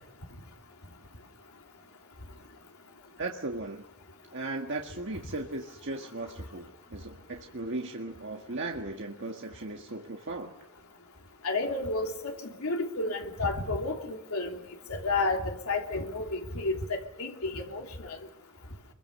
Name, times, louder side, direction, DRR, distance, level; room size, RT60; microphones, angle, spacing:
voice 1, 3.2-3.8 4.3-10.5, right 2 dB, 60° right, 1 dB, 1.8 m, -37 dB
voice 2, 11.4-14.6 14.9-18.2, left 2 dB, 85° left, 2 dB, 3.3 m, -31 dB
26.0 x 23.0 x 6.8 m, 0.88 s
head